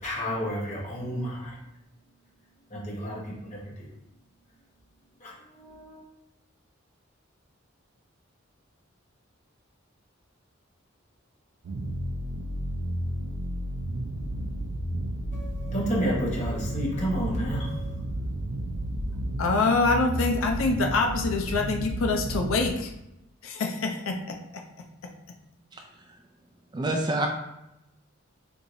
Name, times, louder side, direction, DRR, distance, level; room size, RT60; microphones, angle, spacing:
voice 1, 0.0-1.5 2.7-3.9 5.2-6.0 15.3-17.9, equal, 35° left, -5 dB, 1.2 m, -31 dB
sound 1, 11.6-22.7, right 1 dB, 85° right, 0.4 m, -32 dB
voice 2, 19.4-22.9 23.4-24.4, left 3 dB, 90° left, 4 dB, 0.5 m, -25 dB
voice 3, 26.7-27.3, right 1 dB, 20° right, 3 dB, 0.4 m, -26 dB
4.5 x 2.7 x 2.6 m, 0.89 s
head